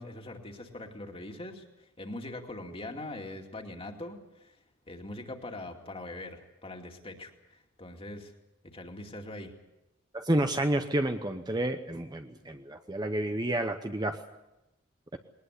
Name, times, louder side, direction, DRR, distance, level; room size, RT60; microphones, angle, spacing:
voice 1, 0.0-4.6 4.9-8.3 8.7-9.5, left 2 dB, 25° left, 3 dB, 2.4 m, -42 dB
voice 2, 10.1-14.2 15.1-15.2, right 1 dB, 20° right, 6 dB, 0.9 m, -30 dB
21.0 x 19.5 x 8.3 m, 0.96 s
head